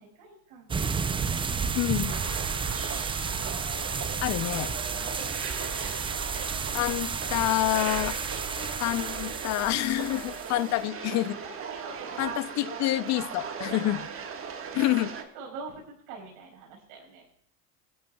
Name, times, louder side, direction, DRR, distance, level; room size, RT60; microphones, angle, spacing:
voice 1, 0.0-1.9 4.6-7.9 8.2-8.5 10.1-10.6 11.2-12.4 13.6-17.3, right 4 dB, 65° right, -1 dB, 5.5 m, -47 dB
sound 1, 0.7-10.6, right 5 dB, 15° right, 0.4 m, -32 dB
voice 2, 1.8-2.1 4.2-4.7 6.7-8.1 8.6-11.4 12.2-14.0 14.7-15.1, left 16 dB, 40° left, 16 dB, 0.6 m, -27 dB
sound 2, 2.1-15.2, right 6 dB, 30° right, 1.6 m, -38 dB
21.0 x 13.0 x 2.3 m, 0.65 s
supercardioid pair, 105°, 41 cm